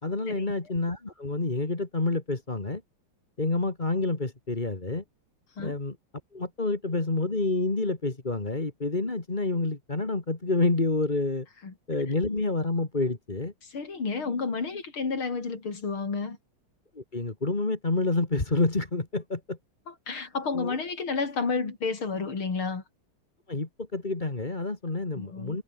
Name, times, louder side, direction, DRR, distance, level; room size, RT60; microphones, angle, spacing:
voice 1, 0.0-2.8 3.4-5.0 5.6-6.0 6.3-11.5 11.9-13.5 16.9-19.6 20.5-20.8 23.5-25.6, left 2 dB, 20° left, 2.4 m, -28 dB
voice 2, 13.6-16.4 19.9-22.8 25.1-25.6, left 4 dB, 70° left, 4.5 m, -31 dB
omnidirectional pair, 2.4 m